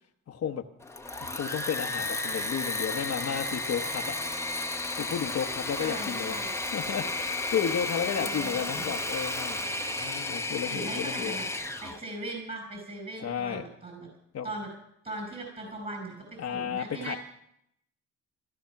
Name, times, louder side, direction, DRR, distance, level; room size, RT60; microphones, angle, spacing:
voice 1, 0.3-0.6 1.2-4.2 5.0-6.4 6.7-11.4 13.2-13.6 14.3-14.5 16.4-17.2, left 8 dB, 55° left, 3 dB, 1.1 m, -33 dB
Engine / Mechanisms, 0.8-12.0, left 2 dB, 10° left, 1.1 m, -33 dB
voice 2, 5.8-6.6 8.2-8.9 10.7-11.5 11.8-14.1 14.4-14.7 15.0-17.2, right 2 dB, 30° right, 2 dB, 5.2 m, -39 dB
16.0 x 13.0 x 5.9 m, 0.74 s
cardioid pair, 90°, 30 cm